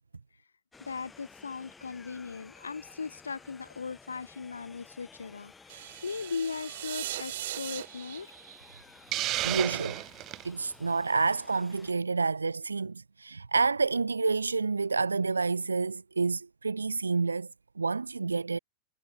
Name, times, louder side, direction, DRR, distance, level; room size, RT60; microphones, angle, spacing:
sound 1, 0.7-11.9, left 4 dB, 15° left, 4.9 m, -55 dB
voice 1, 0.8-8.3, left 5 dB, 75° left, 0.9 m, -38 dB
sound 2, 5.7-9.8, right 13 dB, 55° right, 3.7 m, -40 dB
Hiss, 9.1-10.5, right 16 dB, 35° right, 1.2 m, -31 dB
voice 2, 9.4-10.0 10.4-17.5 17.8-18.6, right 4 dB, 80° right, 0.9 m, -29 dB
figure-of-eight pair, 90°, 0 cm